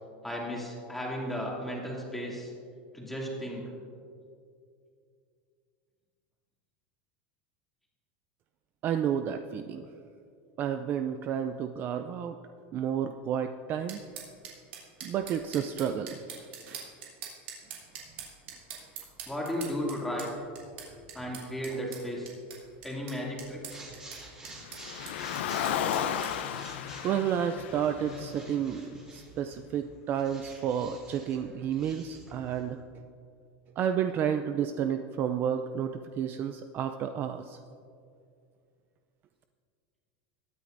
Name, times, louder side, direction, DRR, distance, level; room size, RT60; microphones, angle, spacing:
voice 1, 0.2-2.5 2.9-3.7 19.3-20.3 21.1-22.3 22.8-23.9, equal, 5° left, -4 dB, 2.5 m, -35 dB
voice 2, 8.8-9.9 10.6-12.4 12.7-14.0 15.0-16.2 27.0-28.9 29.1-32.8 33.8-37.6, right 8 dB, 35° right, 8 dB, 0.4 m, -31 dB
sound 1, 13.9-26.3, right 7 dB, 80° right, 3.2 m, -45 dB
sound 2, 23.7-32.7, right 2 dB, 15° right, 2.9 m, -49 dB
Car, 24.6-29.0, left 9 dB, 85° left, 0.6 m, -34 dB
21.5 x 9.2 x 2.6 m, 2.4 s
supercardioid pair, 145°, 6 cm